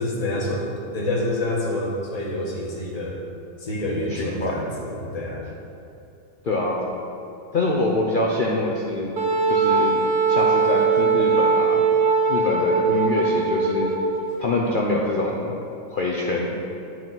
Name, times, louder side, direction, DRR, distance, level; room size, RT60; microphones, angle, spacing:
voice 1, 0.0-3.2 3.6-5.5, left 1 dB, 25° left, -3 dB, 1.1 m, -27 dB
voice 2, 4.1-4.6 6.4-6.8 7.5-9.1 9.5-10.0 10.3-11.9 12.3-13.9 14.4-15.5 15.9-16.5, left 2 dB, 80° left, -3 dB, 0.4 m, -25 dB
Wind instrument woodwind instrument, 9.2-14.3, right 4 dB, 75° right, 1.5 m, -20 dB
10.5 x 4.6 x 4.0 m, 2.6 s
omnidirectional pair, 1.8 m